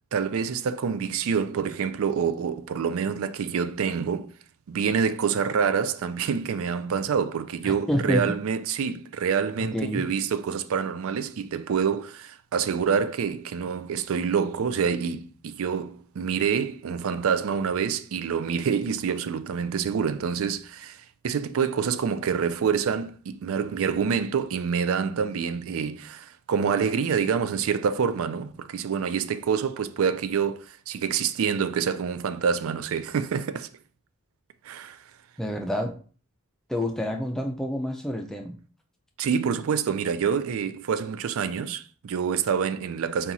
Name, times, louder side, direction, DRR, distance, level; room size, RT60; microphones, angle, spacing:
voice 1, 0.1-4.3 4.7-33.7 34.6-35.0 39.2-43.3, right 6 dB, 65° right, 0.4 m, -27 dB
voice 2, 7.6-8.2 9.6-10.1 35.4-35.9 36.7-38.5, equal, ahead, 0.4 m, -28 dB
4.2 x 2.4 x 4.0 m
head